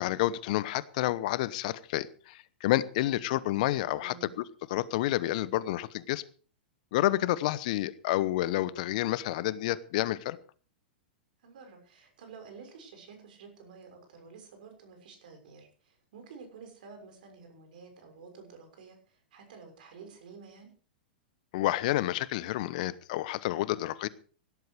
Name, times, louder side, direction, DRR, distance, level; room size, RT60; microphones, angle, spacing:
voice 1, 0.0-6.2 6.9-10.4 21.5-24.1, left 15 dB, 55° left, 19 dB, 0.9 m, -29 dB
voice 2, 4.0-4.3 11.4-20.7, right 5 dB, 65° right, 5 dB, 6.3 m, -50 dB
17.0 x 12.0 x 4.8 m, 0.40 s
hypercardioid pair, 105°, 5 cm